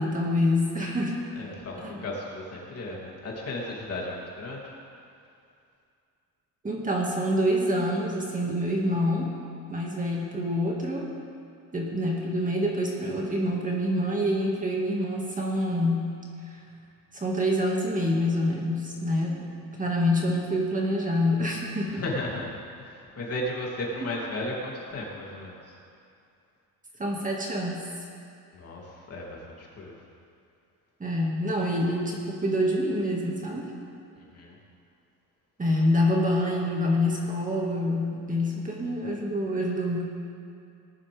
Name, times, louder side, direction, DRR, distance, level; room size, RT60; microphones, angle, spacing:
voice 1, 0.0-1.2 1.8-2.0 6.6-9.3 9.7-11.1 11.7-16.1 16.4-16.6 17.1-19.5 19.8-22.0 27.0-27.8 31.0-33.7 35.6-40.1, left 1 dB, 20° right, -2 dB, 2.1 m, -26 dB
voice 2, 1.3-4.7 21.9-25.8 28.5-30.0 34.1-34.6, left 1 dB, 40° left, -3 dB, 3.1 m, -35 dB
19.0 x 11.5 x 3.6 m, 2.4 s
cardioid pair, 110°, 36 cm